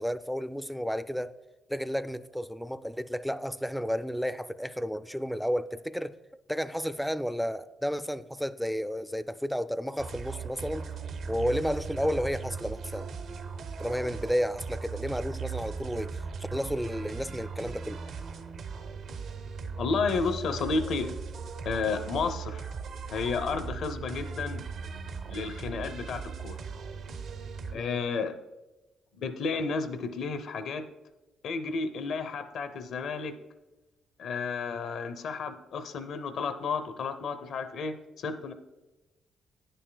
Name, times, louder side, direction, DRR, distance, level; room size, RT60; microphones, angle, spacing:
voice 1, 0.0-1.3 1.7-6.1 6.5-10.9 11.3-13.1 13.8-18.0 27.7-28.0, equal, ahead, 0.3 m, -32 dB
sound 1, 10.0-27.8, right 5 dB, 65° right, 0.6 m, -38 dB
voice 2, 19.8-21.1 21.6-22.7 23.1-24.6 25.3-26.6 27.7-28.4 29.2-30.9 31.4-33.4 34.2-38.5, left 4 dB, 70° left, 0.6 m, -32 dB
9.7 x 9.0 x 2.2 m
cardioid pair, 90°, 0 cm